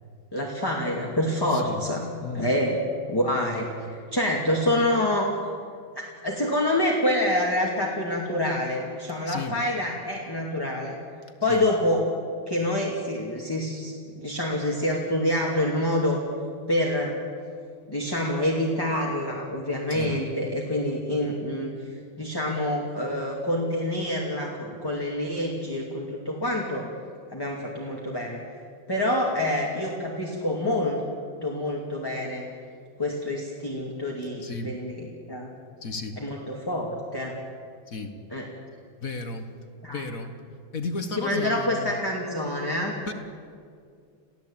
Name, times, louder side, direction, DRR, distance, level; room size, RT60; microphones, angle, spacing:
voice 1, 0.3-2.1 2.3-2.8 3.1-5.3 6.2-11.0 11.4-12.1 12.5-16.2 16.7-17.1 17.9-21.7 22.2-26.9 27.3-28.4 28.9-31.0 31.4-32.4 33.0-35.5 36.2-37.4 38.3-38.5 39.8-40.1 41.2-43.0, left 1 dB, 10° left, -2 dB, 2.4 m, -27 dB
voice 2, 1.5-1.9 2.2-2.5 9.3-9.6 11.5-11.6 19.9-20.1 34.4-34.7 35.8-36.2 37.9-38.1 39.0-39.5 39.9-40.3 40.7-42.0 43.1-43.2, left 3 dB, 45° left, 7 dB, 1.7 m, -33 dB
29.0 x 16.5 x 8.8 m, 2.3 s
omnidirectional pair, 2.2 m